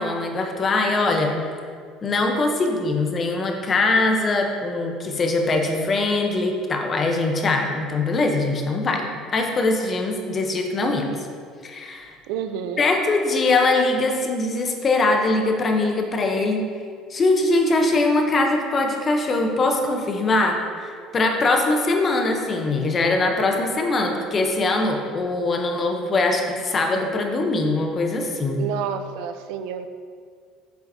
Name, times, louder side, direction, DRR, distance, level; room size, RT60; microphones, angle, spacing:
voice 1, 0.0-1.4 2.0-11.1 11.6-12.1 12.8-16.6 17.1-28.6, left 2 dB, 25° left, 3 dB, 0.8 m, -22 dB
voice 2, 12.3-12.9 28.6-29.9, right 8 dB, 80° right, 9 dB, 0.4 m, -29 dB
8.7 x 6.9 x 2.7 m, 2.1 s
cardioid pair, 155°, 0 cm